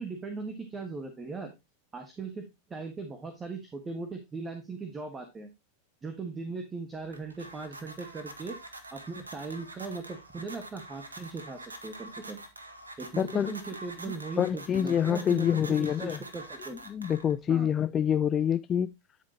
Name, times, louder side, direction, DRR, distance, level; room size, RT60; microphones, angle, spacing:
voice 1, 0.0-1.5 1.9-2.4 2.7-5.5 6.0-8.6 8.9-12.4 13.0-16.8 17.5-17.7, right 4 dB, 20° right, 1.5 m, -39 dB
sound 1, 6.9-17.5, right 2 dB, 85° right, 1.2 m, -46 dB
voice 2, 13.2-13.5 14.1-16.2 16.7-18.9, left 9 dB, 25° left, 0.4 m, -27 dB
11.5 x 5.2 x 2.9 m
figure-of-eight pair, 90°, 0 cm